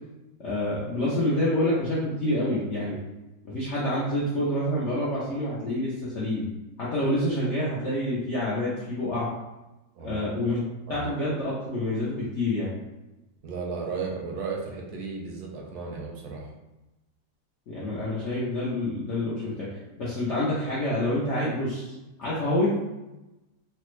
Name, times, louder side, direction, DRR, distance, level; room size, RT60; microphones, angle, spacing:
voice 1, 0.4-3.0 3.4-6.4 6.8-9.3 10.0-10.6 10.9-12.7 17.7-19.7 20.0-21.9 22.2-22.7, left 1 dB, 65° left, -8 dB, 0.7 m, -27 dB
voice 2, 10.0-10.3 10.9-11.1 13.4-16.5, right 4 dB, 70° right, -1 dB, 1.0 m, -34 dB
3.3 x 2.0 x 3.0 m, 1.0 s
omnidirectional pair, 1.9 m